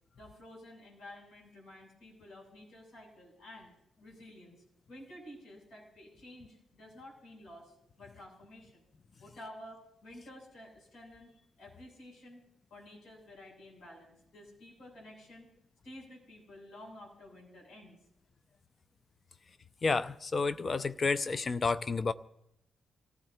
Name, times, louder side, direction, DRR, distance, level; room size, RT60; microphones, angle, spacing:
voice 1, 0.2-3.7 4.0-8.8 9.2-12.4 12.7-15.5 15.8-18.0 19.3-19.4, left 1 dB, 70° left, -3 dB, 8.0 m, -52 dB
voice 2, 19.8-22.1, left 4 dB, 45° left, 14 dB, 0.6 m, -30 dB
26.0 x 15.0 x 2.9 m, 0.78 s
supercardioid pair, 55°, 0 cm